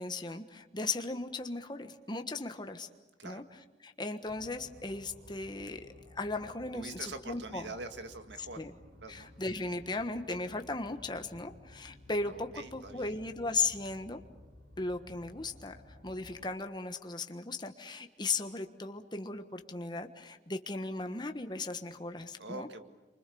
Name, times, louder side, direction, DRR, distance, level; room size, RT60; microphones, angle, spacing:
voice 1, 0.0-2.9 3.2-3.4 3.8-7.7 8.6-8.7 9.1-14.2 14.8-15.7 16.0-22.7, left 3 dB, 25° left, 6 dB, 1.3 m, -37 dB
sound 1, 4.3-16.5, left 1 dB, 70° right, 5.6 m, -55 dB
voice 2, 6.7-8.6 9.0-9.3 12.3-13.2 22.4-22.8, right 3 dB, 90° right, 8 dB, 2.0 m, -44 dB
28.0 x 24.5 x 7.0 m, 1.2 s
head